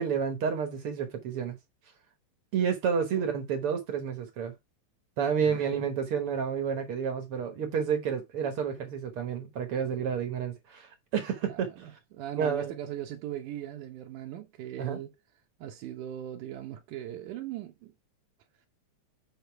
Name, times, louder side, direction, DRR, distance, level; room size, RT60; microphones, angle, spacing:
voice 1, 0.0-1.6 2.5-4.5 5.2-11.9 12.3-12.7 14.8-15.0, right 7 dB, 60° right, 1.7 m, -30 dB
voice 2, 11.5-15.1 15.6-17.9, right 11 dB, 80° right, 2.3 m, -39 dB
8.1 x 3.8 x 4.5 m
omnidirectional pair, 3.6 m